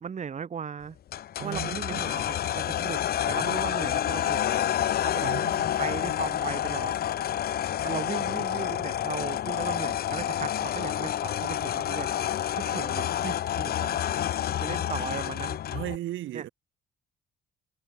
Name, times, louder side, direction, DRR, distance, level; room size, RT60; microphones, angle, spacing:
voice 1, 0.0-0.9 1.4-3.0 3.3-4.4 5.0-5.3 5.8-6.9 7.8-12.1 12.6-14.0 14.6-15.6 16.3-16.4, right 7 dB, 35° right, 1.0 m, -37 dB
sound 1, 1.1-16.0, left 11 dB, 50° left, 0.5 m, -29 dB
voice 2, 1.4-2.0 5.2-5.9 15.7-16.5, right 14 dB, 75° right, 1.0 m, -36 dB
cardioid pair, 90°, 20 cm